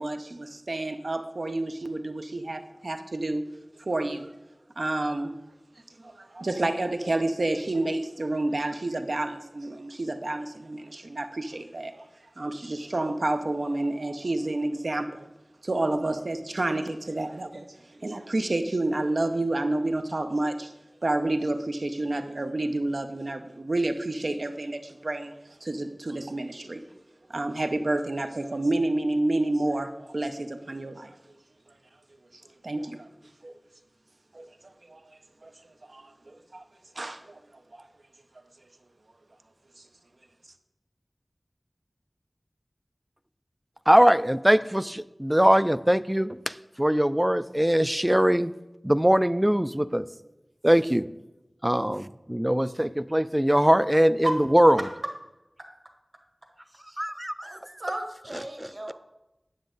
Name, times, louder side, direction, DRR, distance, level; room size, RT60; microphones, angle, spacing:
voice 1, 0.0-3.4 3.8-4.3 4.8-5.4 6.0-12.1 12.4-15.3 15.6-20.7 21.0-25.3 25.6-26.8 27.3-31.1 32.6-33.0 33.4-33.5 34.3-34.5 34.9-35.5 35.8-36.6 37.0-37.4 37.7-37.8, right 2 dB, 75° right, 7 dB, 0.6 m, -29 dB
voice 2, 43.9-48.5 48.8-50.1 50.6-51.1 51.6-54.8 57.0-57.6 58.6-58.9, equal, 10° right, 15 dB, 0.3 m, -22 dB
voice 3, 57.4-58.9, right 1 dB, 55° right, 2 dB, 1.5 m, -33 dB
9.8 x 7.1 x 3.8 m, 0.98 s
wide cardioid pair, 50°, 0 cm